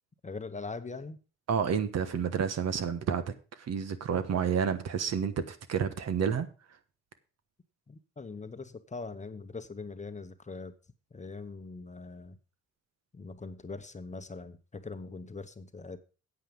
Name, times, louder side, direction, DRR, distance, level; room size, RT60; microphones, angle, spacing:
voice 1, 0.2-1.2 7.9-10.7 11.1-12.4 13.1-16.0, left 3 dB, 25° left, 1.0 m, -42 dB
voice 2, 1.5-3.2 3.6-6.5, right 7 dB, 60° right, 1.3 m, -30 dB
9.0 x 8.4 x 5.2 m
cardioid pair, 90°, 30 cm